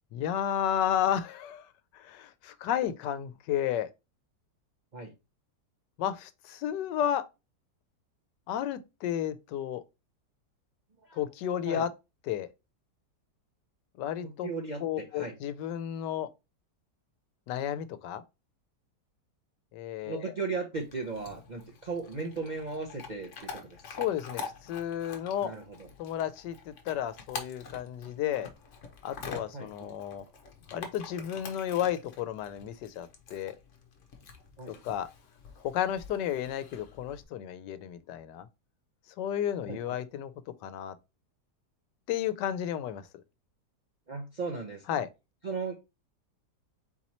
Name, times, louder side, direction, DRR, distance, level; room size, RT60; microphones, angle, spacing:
voice 1, 0.1-1.7 1.9-3.9 6.0-7.2 8.5-9.8 11.1-11.9 12.3-12.5 14.0-14.5 14.8-16.3 17.5-18.2 19.7-20.3 23.9-25.5 26.0-28.5 29.0-30.2 30.7-33.6 34.7-35.1 35.6-38.5 39.2-40.3 40.6-40.9 42.1-43.0 44.9-45.1, left 10 dB, 85° left, 1.2 m, -32 dB
voice 2, 14.2-15.3 20.0-23.8 25.4-25.9 29.5-29.9 34.6-34.7 39.7-39.8 44.1-44.8 45.4-45.7, right 4 dB, 50° right, 0.5 m, -36 dB
Chewing mastication / Dog, 20.7-37.2, left 5 dB, 55° left, 1.1 m, -46 dB
4.3 x 2.9 x 4.1 m
omnidirectional pair, 1.8 m